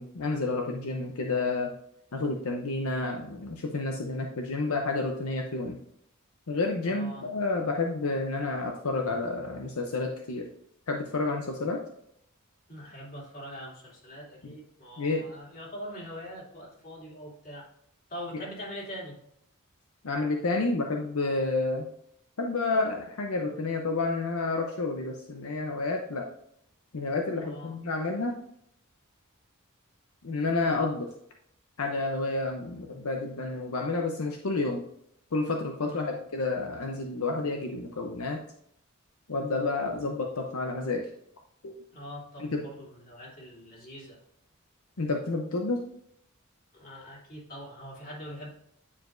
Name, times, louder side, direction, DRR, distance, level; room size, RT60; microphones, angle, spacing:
voice 1, 0.0-1.7 2.1-5.8 6.5-10.5 10.9-11.8 14.4-14.5 15.0-15.3 18.3-18.4 20.0-21.9 22.4-26.3 26.9-28.4 30.2-31.1 31.8-34.8 35.3-38.4 39.3-41.1 41.6-41.8 42.4-42.6 45.0-45.9, left 3 dB, 75° left, 2 dB, 0.7 m, -30 dB
voice 2, 6.9-7.2 12.7-17.7 18.1-19.1 27.4-27.7 35.8-36.2 41.9-44.2 46.7-48.5, equal, 40° left, -4 dB, 2.7 m, -43 dB
9.8 x 4.8 x 2.6 m, 0.71 s
head